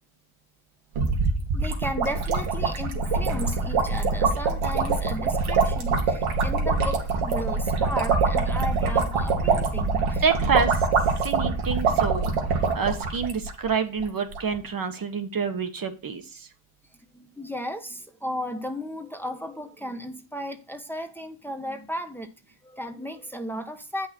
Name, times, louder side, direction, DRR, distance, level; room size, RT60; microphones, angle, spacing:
sound 1, 1.0-13.7 14.0-14.1 14.3-14.5, right 4 dB, 80° right, 2.5 m, -24 dB
voice 1, 1.5-10.2 17.1-22.3 22.6-24.1, equal, 5° left, 1.2 m, -35 dB
voice 2, 10.2-10.8 11.2-16.5, right 5 dB, 45° right, 1.4 m, -28 dB
8.5 x 5.7 x 4.5 m
cardioid pair, 95°, 49 cm